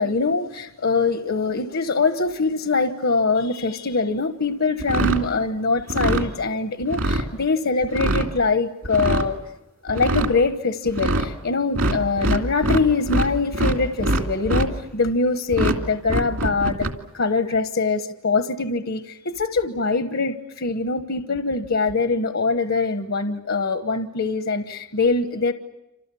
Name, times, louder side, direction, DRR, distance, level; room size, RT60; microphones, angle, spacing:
voice 1, 0.0-9.4 9.8-25.5, left 3 dB, 65° left, 8 dB, 1.2 m, -23 dB
sound 1, 4.8-5.3 5.8-6.3 6.8-7.3 7.8-8.3 8.8-9.3 9.9-10.3 10.9-11.3 11.7-13.3 13.5-14.7 15.5-15.8 16.1-16.9, right 1 dB, 70° right, 2.6 m, -22 dB
28.5 x 27.0 x 7.1 m, 0.95 s
head